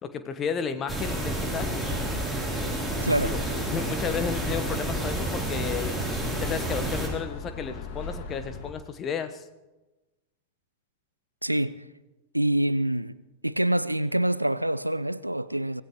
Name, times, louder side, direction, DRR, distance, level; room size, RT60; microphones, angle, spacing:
voice 1, 0.0-1.8 3.2-3.4 3.7-6.0 6.4-9.4, left 7 dB, 25° left, 1.2 m, -32 dB
sound 1, 0.9-7.1, right 1 dB, ahead, 3.6 m, -30 dB
voice 2, 3.0-3.4 11.4-11.8 12.3-13.2 13.4-15.8, right 1 dB, 85° right, 0.4 m, -26 dB
sound 2, 3.1-8.7, left 4 dB, 50° left, 2.3 m, -40 dB
24.5 x 17.0 x 3.1 m
figure-of-eight pair, 90°, 0 cm